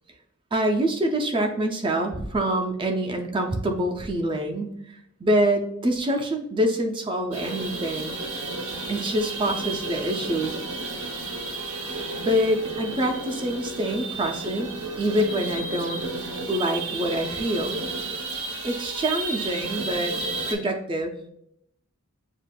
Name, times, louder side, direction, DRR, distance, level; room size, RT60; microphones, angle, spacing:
voice 1, 0.5-4.8 5.2-8.2 8.9-10.5 11.9-14.7 15.0-16.0 16.5-17.8 18.6-20.2 20.5-21.1, right 1 dB, 25° right, 4 dB, 0.4 m, -25 dB
sound 1, 7.3-20.5, right 3 dB, 80° right, 0.8 m, -32 dB
7.2 x 2.4 x 2.2 m, 0.74 s
head